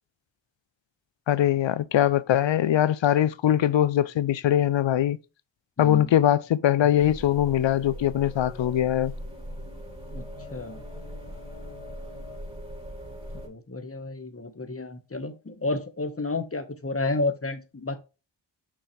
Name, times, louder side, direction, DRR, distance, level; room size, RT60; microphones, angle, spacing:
voice 1, 1.3-5.2 5.8-9.1, left 11 dB, 80° left, 0.6 m, -22 dB
voice 2, 5.8-6.1 10.1-10.2 10.5-10.8 13.4-18.0, left 2 dB, 30° left, 1.3 m, -31 dB
sound 1, 6.9-13.5, equal, 15° right, 3.4 m, -40 dB
6.2 x 5.6 x 3.2 m
cardioid pair, 50°, 44 cm